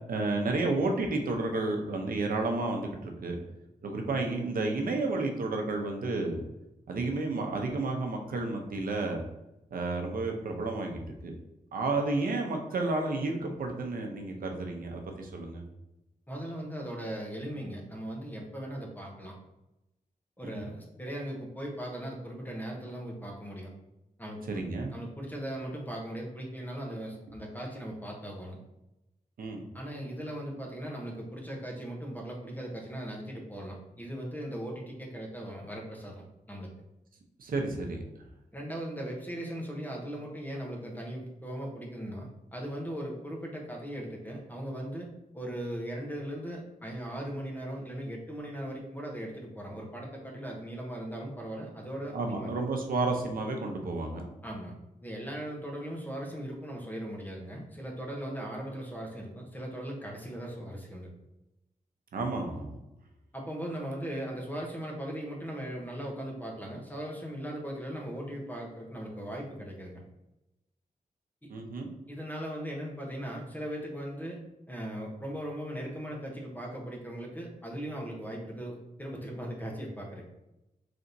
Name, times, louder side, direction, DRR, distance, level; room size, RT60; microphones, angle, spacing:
voice 1, 0.1-3.4 3.8-6.4 6.9-9.2 9.7-11.3 11.7-15.6 20.4-20.7 24.5-24.9 29.4-29.6 37.4-38.0 52.1-54.3 62.1-62.7 71.5-71.9, right 3 dB, 80° right, 2 dB, 0.6 m, -31 dB
voice 2, 16.3-19.4 20.4-23.7 24.2-28.6 29.7-36.7 38.5-45.1 45.3-52.5 54.4-54.7 55.0-61.1 63.3-70.0 72.1-74.4 74.7-80.3, equal, 10° left, -1 dB, 0.8 m, -38 dB
4.0 x 3.4 x 2.6 m, 0.92 s
wide cardioid pair, 135°, 15 cm